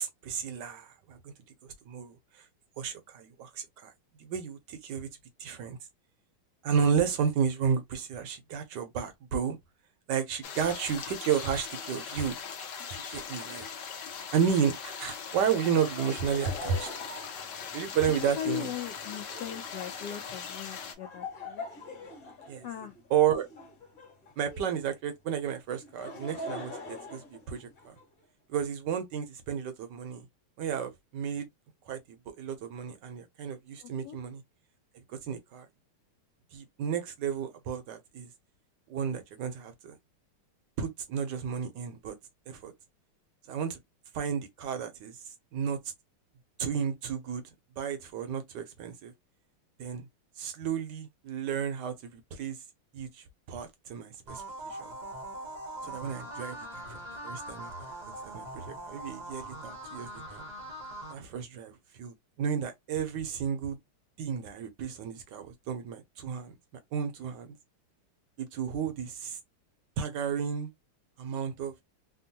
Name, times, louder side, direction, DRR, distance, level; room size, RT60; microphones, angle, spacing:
voice 1, 0.0-1.3 1.6-2.2 2.8-3.9 4.2-5.1 5.4-5.8 6.6-9.6 10.1-12.4 12.9-13.7 14.3-17.0 17.7-18.7 22.5-22.7 23.1-23.5 24.4-27.9 28.5-30.2 30.6-31.5 31.9-32.0 32.3-34.4 35.1-35.7 36.5-38.3 38.9-40.0 40.8-42.1 42.5-42.7 43.5-43.8 44.1-45.2 45.5-45.8 46.6-47.4 47.8-49.1 49.8-50.1 50.4-52.6 52.9-54.9 55.8-57.0 57.2-57.9 58.3-60.4 61.1-61.7 62.0-63.8 64.2-66.5 66.9-67.5 68.4-69.4 70.0-70.7 71.2-71.7, right 7 dB, 75° right, 1.0 m, -32 dB
sound 1, 10.4-20.9, left 6 dB, 65° left, 1.2 m, -40 dB
Laughter, 15.8-24.8 25.7-28.0, left 2 dB, 45° left, 1.4 m, -44 dB
voice 2, 18.2-21.6 22.6-22.9 33.8-34.2, left 11 dB, 85° left, 0.9 m, -39 dB
sound 2, 54.3-61.1, right 1 dB, 50° right, 0.5 m, -42 dB
3.5 x 2.2 x 2.7 m
omnidirectional pair, 2.4 m